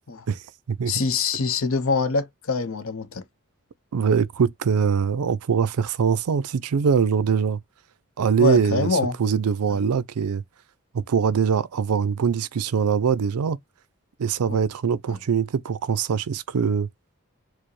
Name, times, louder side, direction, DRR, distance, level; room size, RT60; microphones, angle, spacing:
voice 1, 0.3-0.9 3.9-7.6 8.2-8.9 9.2-10.4 10.9-13.6 14.2-16.9, right 6 dB, 85° right, 0.4 m, -23 dB
voice 2, 0.9-3.3 8.4-9.2 9.7-9.8 14.5-14.6 15.1-15.2, left 4 dB, 65° left, 0.7 m, -25 dB
4.7 x 2.0 x 3.1 m
head